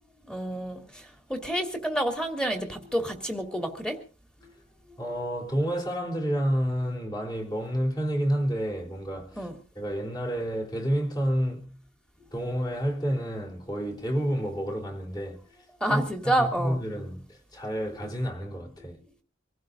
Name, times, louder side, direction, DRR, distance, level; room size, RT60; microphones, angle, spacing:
voice 1, 0.3-0.8 1.3-4.0 9.4-9.5 15.8-16.8, right 1 dB, 5° left, 2.7 m, -28 dB
voice 2, 5.0-9.5 9.8-11.8 12.3-15.4 15.8-19.0, equal, 20° left, 3.8 m, -29 dB
26.0 x 15.5 x 2.6 m
head